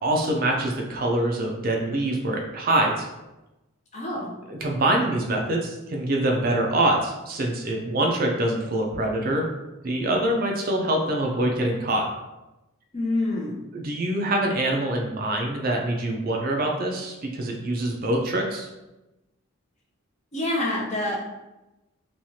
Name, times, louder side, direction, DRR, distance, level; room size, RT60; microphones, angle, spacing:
voice 1, 0.0-3.1 4.5-9.5 9.8-12.1 13.7-18.7, right 1 dB, 45° right, 1 dB, 0.4 m, -25 dB
voice 2, 3.9-4.3 12.9-13.6 20.3-21.2, left 1 dB, 35° left, -3 dB, 0.6 m, -26 dB
3.0 x 2.3 x 2.7 m, 0.99 s
head